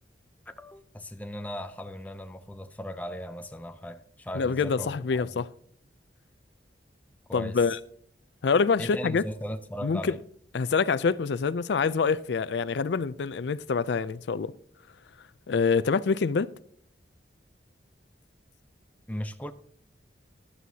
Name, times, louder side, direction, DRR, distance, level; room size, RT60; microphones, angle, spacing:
voice 1, 0.5-5.4 7.3-7.8 8.8-10.2 19.1-19.5, equal, 10° left, 0.5 m, -38 dB
voice 2, 4.3-5.5 7.3-7.8 8.4-9.2 9.8-10.1 10.5-14.5 15.5-16.5, left 5 dB, 70° left, 0.4 m, -26 dB
15.5 x 11.0 x 2.8 m
head